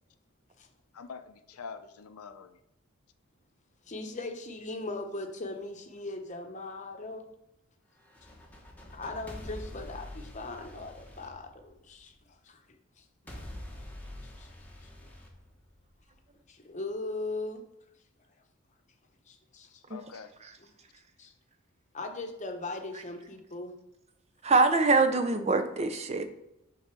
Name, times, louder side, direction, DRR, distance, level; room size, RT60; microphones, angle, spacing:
voice 1, 0.9-2.6 19.9-20.3, left 5 dB, 90° left, 10 dB, 0.6 m, -45 dB
voice 2, 3.9-7.3 8.9-12.6 13.0-13.1 14.2-14.5 15.0-15.1 16.5-17.6 19.3-19.8 20.6-20.7 21.2-21.3 21.9-23.7, left 2 dB, 35° left, 5 dB, 0.8 m, -39 dB
sound 1, 8.0-12.1 13.3-16.1, left 1 dB, 5° left, 0.9 m, -46 dB
voice 3, 24.4-26.3, right 3 dB, 30° right, 9 dB, 0.5 m, -24 dB
6.4 x 3.8 x 6.0 m, 0.90 s
head